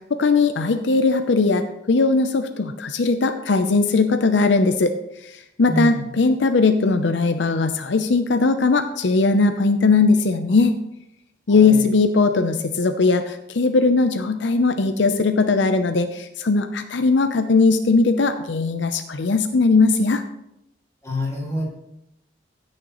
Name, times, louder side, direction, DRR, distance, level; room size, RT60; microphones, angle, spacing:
voice 1, 0.1-4.9 5.3-10.8 11.5-20.2, left 3 dB, 70° left, 8 dB, 0.6 m, -19 dB
voice 2, 5.7-6.0 11.5-11.8 21.0-21.7, equal, 15° left, -2 dB, 2.1 m, -26 dB
16.0 x 6.5 x 3.0 m, 0.84 s
head